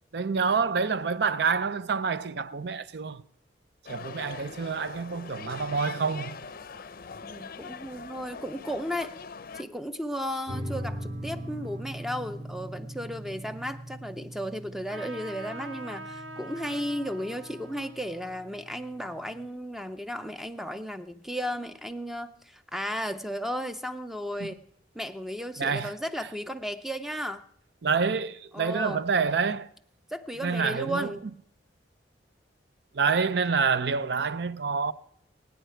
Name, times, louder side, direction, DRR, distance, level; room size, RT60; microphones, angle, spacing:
voice 1, 0.1-3.2 3.9-6.4 24.4-24.5 25.6-25.9 27.8-29.7 30.4-31.1 32.9-34.9, right 5 dB, 65° right, 0.5 m, -27 dB
sound 1, 3.9-9.6, left 5 dB, 50° left, 0.6 m, -42 dB
voice 2, 7.2-9.1 9.5-24.6 24.9-27.4 28.5-29.0 30.1-31.3, equal, ahead, 0.5 m, -34 dB
sound 2, 10.5-19.4, equal, 30° right, 1.1 m, -41 dB
Trumpet, 14.9-19.9, right 1 dB, 80° right, 1.5 m, -45 dB
22.5 x 9.2 x 4.5 m
head